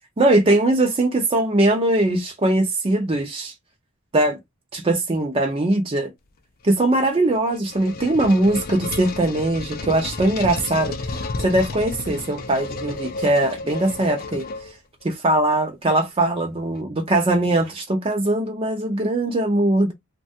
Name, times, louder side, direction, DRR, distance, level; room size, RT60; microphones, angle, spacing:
voice 1, 0.2-3.5 4.1-4.4 4.7-6.1 6.6-14.5 15.0-19.9, right 1 dB, 25° right, 0.5 m, -21 dB
sound 1, 7.3-15.0, left 3 dB, 40° left, 0.4 m, -32 dB
3.2 x 2.2 x 2.6 m
head